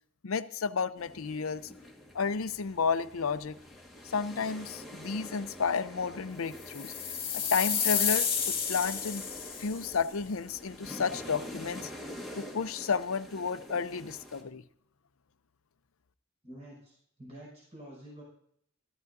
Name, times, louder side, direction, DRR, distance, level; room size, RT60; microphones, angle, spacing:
voice 1, 0.2-1.7 2.1-3.6 4.0-6.9 7.3-9.2 9.6-11.9 12.3-14.6, left 5 dB, 80° left, 12 dB, 0.6 m, -32 dB
sound 1, 1.0-14.4, left 1 dB, ahead, 1.6 m, -47 dB
sound 2, 6.7-9.9, left 7 dB, 25° left, 2.0 m, -30 dB
voice 2, 16.4-18.2, right 1 dB, 30° right, -5 dB, 5.9 m, -48 dB
14.0 x 14.0 x 2.7 m, 0.67 s
head